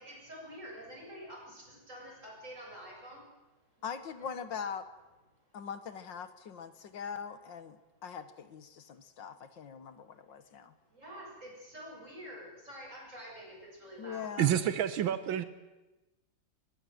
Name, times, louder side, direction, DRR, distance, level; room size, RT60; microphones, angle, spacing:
voice 1, 0.0-3.2 3.8-3.9 10.9-14.5, equal, 40° right, -1 dB, 7.9 m, -47 dB
voice 2, 3.8-4.9 5.5-10.7 14.0-14.5, left 7 dB, 70° left, 11 dB, 1.9 m, -42 dB
voice 3, 14.4-15.4, right 10 dB, 85° right, 12 dB, 1.8 m, -28 dB
22.0 x 22.0 x 7.9 m, 1.1 s
omnidirectional pair, 2.1 m